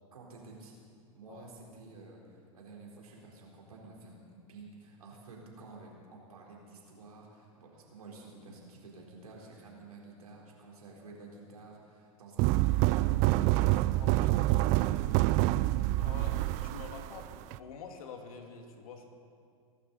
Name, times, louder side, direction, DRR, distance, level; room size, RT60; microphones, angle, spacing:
voice 1, 0.1-0.8 1.1-15.6 16.1-16.4, right 3 dB, 90° right, -2 dB, 4.1 m, -51 dB
sound 1, 12.4-17.6, right 17 dB, 40° right, 0.4 m, -27 dB
voice 2, 14.0-14.6 16.0-17.3 17.6-19.1, left 5 dB, 75° left, 3 dB, 2.3 m, -47 dB
23.5 x 12.0 x 4.1 m, 2.3 s
hypercardioid pair, 115°, 18 cm